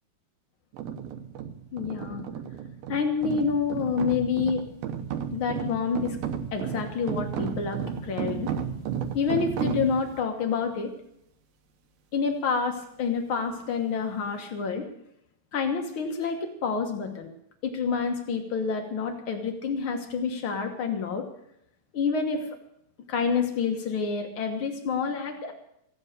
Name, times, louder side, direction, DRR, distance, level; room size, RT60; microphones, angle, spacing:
sound 1, 0.7-10.2, right 8 dB, 75° right, 2.8 m, -33 dB
voice 1, 1.7-2.2 2.9-4.6 5.3-6.2 6.5-8.5 9.1-10.9 12.1-14.9 15.5-17.3 17.6-21.3 21.9-22.5 23.1-25.5, left 5 dB, 90° left, 4 dB, 1.1 m, -28 dB
15.5 x 11.0 x 6.6 m, 0.76 s
omnidirectional pair, 4.4 m